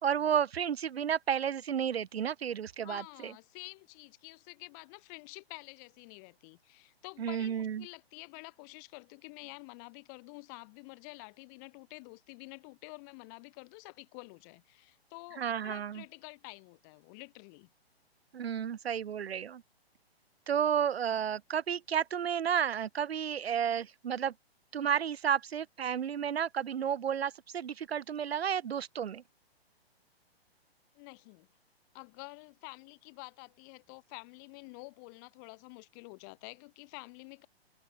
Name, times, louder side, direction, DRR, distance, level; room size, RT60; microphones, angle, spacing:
voice 1, 0.0-3.3 7.2-7.9 15.4-16.0 18.3-19.6 20.5-24.3 24.7-29.2, right 8 dB, 75° right, 0.7 m, -32 dB
voice 2, 2.8-17.7 30.9-31.5 31.9-37.5, left 34 dB, 20° left, 0.6 m, -49 dB
open air
figure-of-eight pair, 125°, 32 cm